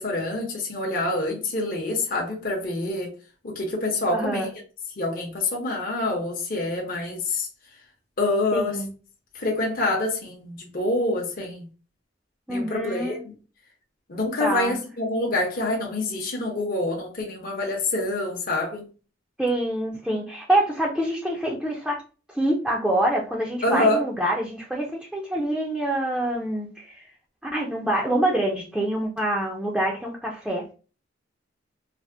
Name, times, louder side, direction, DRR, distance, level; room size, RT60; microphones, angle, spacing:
voice 1, 0.0-3.1 3.4-4.5 5.0-7.5 8.2-8.8 9.3-11.7 12.5-13.3 14.1-18.8 23.6-24.0, left 2 dB, 50° left, 0.8 m, -26 dB
voice 2, 4.1-4.5 8.5-8.9 12.5-13.2 14.4-14.8 19.4-22.0 22.3-27.0 27.4-30.7, right 1 dB, ahead, 0.5 m, -26 dB
3.3 x 2.1 x 2.6 m
head